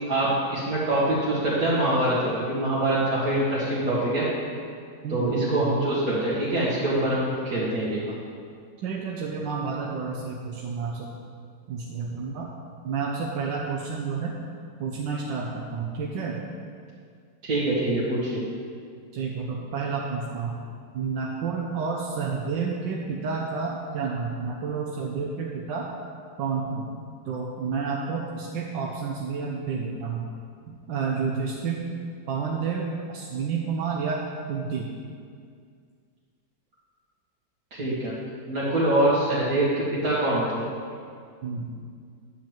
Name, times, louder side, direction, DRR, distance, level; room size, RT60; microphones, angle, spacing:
voice 1, 0.1-4.2 5.1-8.0 17.4-18.4 37.7-38.1 38.5-40.7, right 1 dB, 50° right, -10 dB, 2.2 m, -24 dB
voice 2, 5.0-5.7 8.8-11.1 11.7-12.5 12.8-14.3 14.8-16.4 19.1-20.5 20.9-25.9 26.4-26.9 27.3-30.3 30.7-31.8 32.3-34.2 34.5-34.9 41.4-41.8, right 5 dB, 75° right, -2 dB, 1.4 m, -30 dB
10.0 x 4.5 x 7.4 m, 2.2 s
omnidirectional pair, 2.1 m